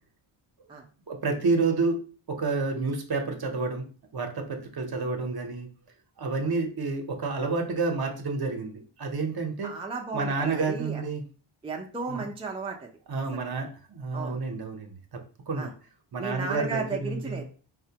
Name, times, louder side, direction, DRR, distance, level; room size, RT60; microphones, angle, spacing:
voice 1, 1.1-2.0 2.3-3.8 4.1-5.7 6.2-9.7 10.1-11.2 12.1-12.3 13.1-15.2 15.5-15.7 16.1-17.4, right 3 dB, 50° right, 4 dB, 0.7 m, -29 dB
voice 2, 9.6-11.0 11.6-12.9 13.3-13.5 14.1-14.4 15.5-15.7 16.2-17.4, right 4 dB, 10° right, 1 dB, 0.4 m, -34 dB
4.1 x 2.1 x 2.8 m, 0.39 s
wide cardioid pair, 90°, 49 cm